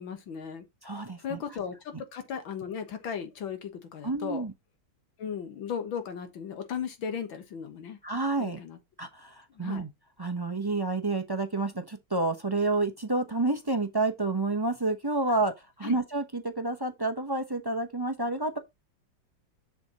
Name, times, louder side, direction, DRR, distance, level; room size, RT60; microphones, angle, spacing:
voice 1, 0.0-0.6 1.2-4.4 5.2-8.0 8.4-8.8 9.6-9.8 15.8-16.0, left 7 dB, 85° left, 2.2 m, -36 dB
voice 2, 0.8-1.4 4.0-4.5 8.0-8.6 9.0-9.9 10.2-18.6, right 2 dB, 30° right, 0.4 m, -29 dB
7.0 x 6.0 x 4.0 m
omnidirectional pair, 2.1 m